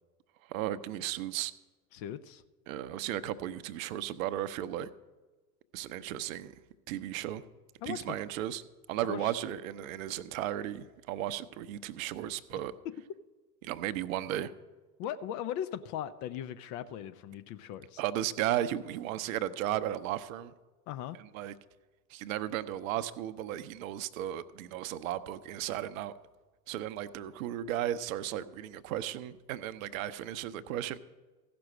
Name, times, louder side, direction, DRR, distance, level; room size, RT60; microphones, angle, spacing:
voice 1, 0.5-1.5 2.7-4.9 5.7-6.6 6.9-7.4 7.8-8.6 8.9-12.7 13.6-14.5 18.0-20.5 21.3-21.5 22.1-26.1 26.7-31.0, right 12 dB, 55° right, 14 dB, 0.7 m, -35 dB
voice 2, 1.9-2.4 7.8-8.2 9.0-9.4 12.5-12.6 12.8-12.9 15.0-18.0 20.9-21.2, left 10 dB, 35° left, 12 dB, 0.5 m, -38 dB
15.0 x 6.0 x 6.4 m, 1.2 s
figure-of-eight pair, 80°, 49 cm